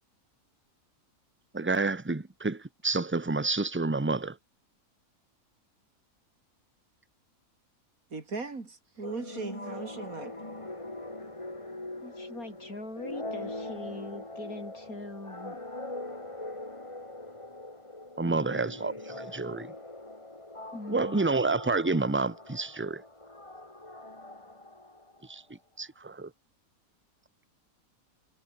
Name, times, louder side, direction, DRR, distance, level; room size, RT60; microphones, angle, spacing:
voice 1, 1.5-4.4 18.2-19.7 20.9-23.0 25.3-25.4 25.8-26.3, right 3 dB, 10° right, 1.0 m, -29 dB
voice 2, 8.1-10.3, right 3 dB, 75° right, 3.8 m, -38 dB
sound 1, 9.0-25.4, left 2 dB, 20° left, 2.7 m, -42 dB
voice 3, 12.0-15.6 18.2-18.8 20.7-21.3, left 2 dB, 80° left, 6.6 m, -42 dB
omnidirectional pair, 1.5 m